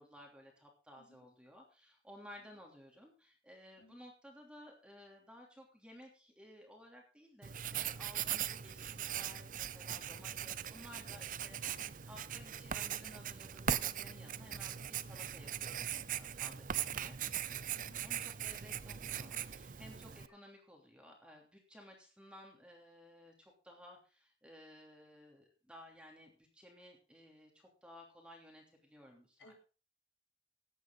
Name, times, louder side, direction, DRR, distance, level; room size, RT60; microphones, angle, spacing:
voice 1, 0.0-17.2 18.0-29.5, equal, 5° right, 1 dB, 3.0 m, -57 dB
Writing, 7.4-20.3, right 9 dB, 45° right, 0.6 m, -40 dB
voice 2, 11.5-11.9 16.9-17.2 17.7-18.0 20.3-20.4 29.4-29.5, left 1 dB, 70° left, 3 dB, 3.7 m, -61 dB
15.5 x 10.5 x 3.9 m, 0.34 s
head